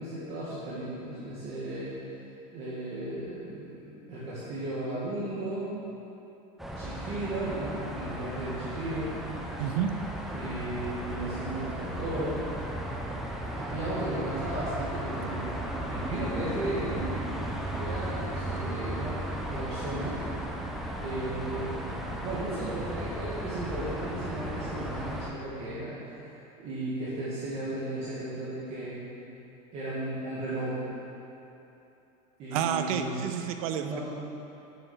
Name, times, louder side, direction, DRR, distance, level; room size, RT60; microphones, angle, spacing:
voice 1, 0.0-1.9 2.5-5.7 6.8-9.2 10.3-12.5 13.5-15.5 15.9-17.2 17.7-19.2 19.5-20.2 21.0-21.7 22.2-29.1 29.7-30.9 32.4-33.2 33.8-34.0, right 1 dB, 35° right, -10 dB, 1.7 m, -35 dB
sound 1, 6.6-25.3, right 1 dB, ahead, 0.4 m, -35 dB
voice 2, 9.6-10.0 32.5-34.0, right 9 dB, 70° right, 7 dB, 0.7 m, -30 dB
8.3 x 6.1 x 6.8 m, 2.9 s
cardioid pair, 180°, 19 cm